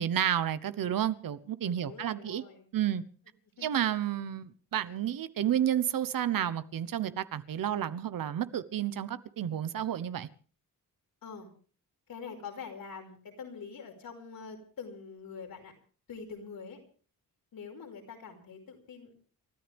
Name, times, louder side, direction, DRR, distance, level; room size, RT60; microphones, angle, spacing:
voice 1, 0.0-2.4 2.7-3.0 3.6-10.3, right 10 dB, 70° right, 1.1 m, -31 dB
voice 2, 1.8-2.7 3.6-3.8 11.2-11.5 12.1-15.8 16.1-16.8 17.5-19.2, left 5 dB, 70° left, 5.2 m, -45 dB
29.0 x 14.0 x 3.6 m
wide cardioid pair, 170°, 36 cm